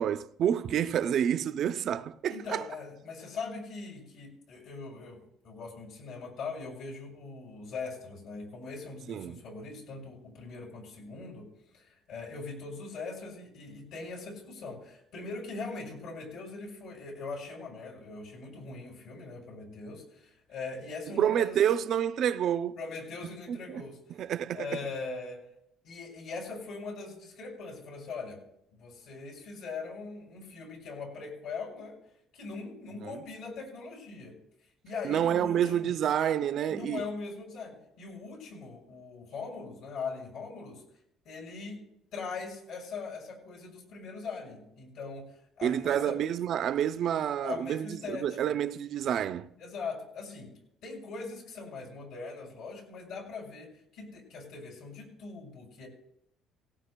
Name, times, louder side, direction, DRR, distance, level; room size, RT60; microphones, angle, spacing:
voice 1, 0.0-2.6 9.1-9.4 21.2-22.8 23.5-23.8 24.2-24.8 33.0-33.2 35.0-37.1 45.6-49.5, right 9 dB, 45° right, 0.4 m, -28 dB
voice 2, 2.3-11.5 11.7-21.5 22.8-24.3 24.5-25.4 25.8-28.4 28.7-32.0 32.3-34.3 34.8-35.9 36.7-40.8 41.2-41.8 42.1-45.2 45.6-46.2 47.4-48.4 49.6-50.5 50.8-55.9, left 4 dB, 65° left, 6.1 m, -41 dB
19.0 x 17.5 x 2.2 m
cardioid pair, 170°, 0 cm